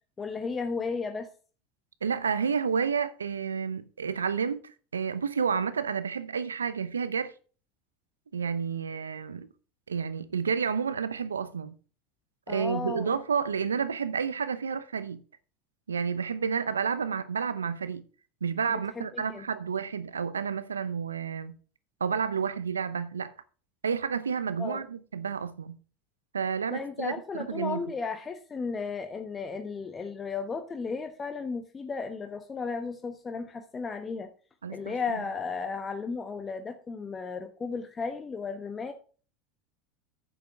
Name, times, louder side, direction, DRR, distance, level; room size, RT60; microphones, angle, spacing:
voice 1, 0.2-1.3 12.5-13.1 19.0-19.4 24.6-24.8 26.7-34.3 34.7-38.9, left 4 dB, 25° left, 1.1 m, -34 dB
voice 2, 2.0-7.3 8.3-9.5 9.9-11.8 12.5-15.2 15.9-18.0 18.4-21.6 22.0-23.3 23.8-25.8 26.3-27.8 34.6-35.2, right 6 dB, 85° right, 0.7 m, -30 dB
9.9 x 6.8 x 4.7 m
hypercardioid pair, 80°, 0 cm